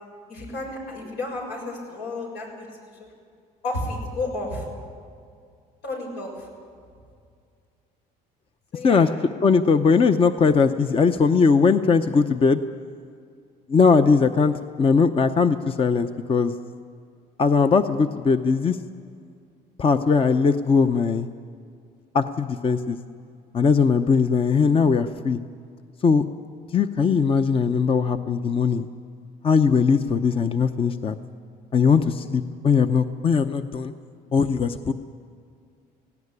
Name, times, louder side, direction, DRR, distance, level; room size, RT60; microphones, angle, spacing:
voice 1, 0.3-3.0 3.6-4.6 5.8-6.5 8.7-9.0, left 2 dB, 85° left, 0 dB, 6.7 m, -32 dB
voice 2, 9.4-12.6 13.7-16.5 17.4-18.8 19.8-21.3 22.1-23.0 23.5-25.4 26.0-26.2 26.7-28.9 29.4-31.1 31.7-33.9 34.3-34.9, left 5 dB, 35° left, 9 dB, 0.7 m, -20 dB
18.0 x 17.0 x 9.7 m, 2.2 s
cardioid pair, 110°, 17 cm